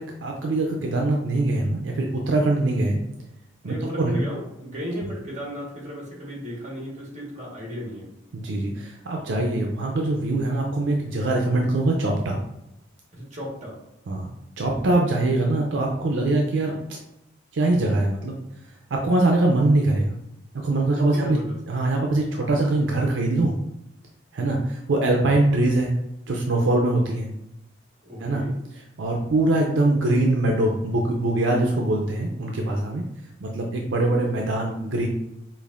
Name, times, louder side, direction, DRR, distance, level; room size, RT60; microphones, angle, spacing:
voice 1, 0.0-3.0 3.6-4.1 8.3-12.4 14.1-14.3 14.6-17.0 17.5-18.4 18.9-20.1 20.6-21.4 21.7-23.5 24.3-25.9 26.3-27.3 28.2-28.4 28.7-33.0 33.4-35.1, right 2 dB, 75° right, 0 dB, 0.5 m, -23 dB
voice 2, 3.6-8.1 13.1-13.8 20.9-21.6 28.0-28.5, equal, 40° right, -3 dB, 1.4 m, -34 dB
5.1 x 2.6 x 2.5 m, 0.86 s
head